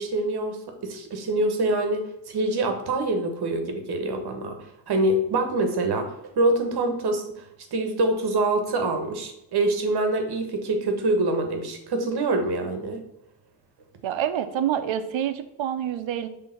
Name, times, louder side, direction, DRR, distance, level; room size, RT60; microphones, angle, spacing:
voice 1, 0.0-4.6 4.9-7.4 7.7-13.0, right 2 dB, 55° right, 5 dB, 1.3 m, -25 dB
voice 2, 14.0-16.3, right 10 dB, 80° right, 10 dB, 0.8 m, -27 dB
6.5 x 3.6 x 5.7 m, 0.84 s
wide cardioid pair, 155°, 45 cm